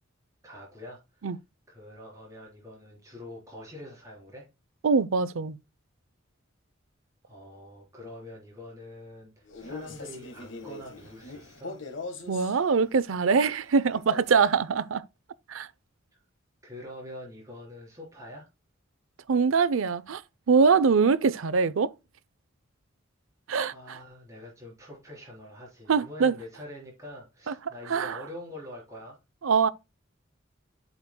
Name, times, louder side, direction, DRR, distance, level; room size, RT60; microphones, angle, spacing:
voice 1, 0.4-1.0 1.7-4.5 7.2-11.8 16.6-18.5 23.7-29.2, left 1 dB, 15° right, 4.0 m, -45 dB
voice 2, 4.8-5.6 12.3-15.0 15.5-15.7 19.3-20.2 20.5-21.9 23.5-24.0 25.9-26.4 27.5-27.6 27.9-28.2 29.4-29.7, right 5 dB, 90° right, 0.5 m, -23 dB
Male speech man speaking, 9.5-12.6 13.9-14.6, left 3 dB, 75° left, 1.5 m, -41 dB
8.0 x 7.2 x 2.2 m
head